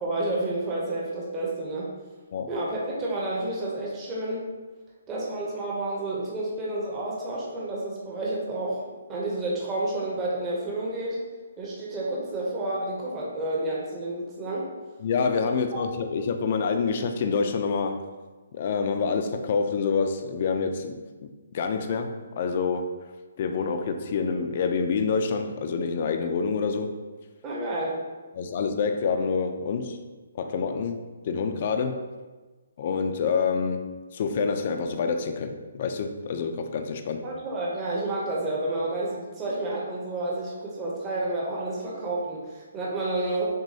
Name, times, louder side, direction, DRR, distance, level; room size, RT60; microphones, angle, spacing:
voice 1, 0.0-1.9 2.5-4.5 5.1-8.8 9.1-11.2 11.6-14.7 15.4-15.5 27.4-28.0 37.2-43.4, right 2 dB, 15° right, -5 dB, 0.7 m, -30 dB
voice 2, 15.0-18.1 18.5-21.0 21.5-23.0 23.4-27.0 28.3-30.0 30.3-32.1 32.8-37.3, left 5 dB, 40° left, 6 dB, 0.4 m, -27 dB
6.1 x 2.2 x 2.7 m, 1.3 s
hypercardioid pair, 165°, 0 cm